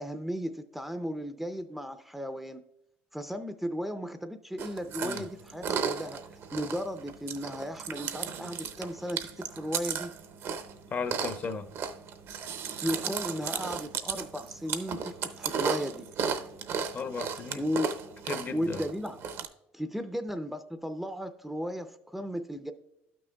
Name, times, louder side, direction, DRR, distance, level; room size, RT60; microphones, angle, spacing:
voice 1, 0.0-2.6 3.1-6.2 6.5-10.1 12.8-16.1 17.6-17.9 18.5-19.2 19.7-22.7, equal, 5° right, 0.4 m, -35 dB
Chewing mastication, 4.6-19.5, right 6 dB, 60° right, 0.7 m, -35 dB
voice 2, 10.9-11.7 16.9-17.6 18.3-18.8, left 5 dB, 40° left, 0.7 m, -35 dB
12.0 x 6.1 x 2.2 m
supercardioid pair, 95°, 5 cm